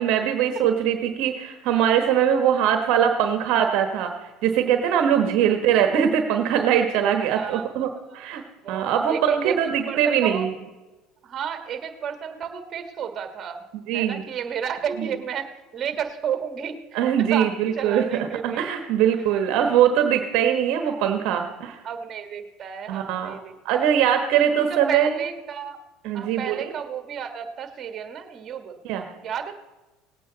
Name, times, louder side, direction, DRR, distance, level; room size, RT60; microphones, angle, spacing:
voice 1, 0.0-4.1 4.4-8.4 8.7-10.5 13.9-14.2 16.9-21.8 22.9-23.3 23.6-25.1 26.0-26.6 28.8-29.0, right 9 dB, 65° right, 6 dB, 1.2 m, -22 dB
voice 2, 7.3-8.2 8.6-10.4 11.2-13.7 13.9-18.7 21.8-23.9 24.7-25.8 26.1-28.8 29.2-29.5, right 8 dB, 40° right, 7 dB, 1.6 m, -32 dB
18.5 x 8.7 x 4.0 m, 1.1 s
supercardioid pair, 90°, 0 cm